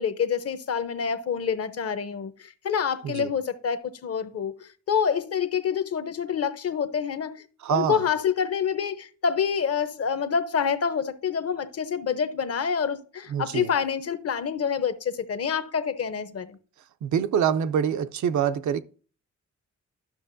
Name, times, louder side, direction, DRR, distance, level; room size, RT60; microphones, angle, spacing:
voice 1, 0.0-7.3 7.7-16.6, left 7 dB, 55° left, 0.8 m, -27 dB
voice 2, 7.6-8.0 13.3-13.7 17.0-18.8, right 8 dB, 75° right, 0.5 m, -25 dB
12.5 x 6.0 x 2.6 m
wide cardioid pair, 125°, 30 cm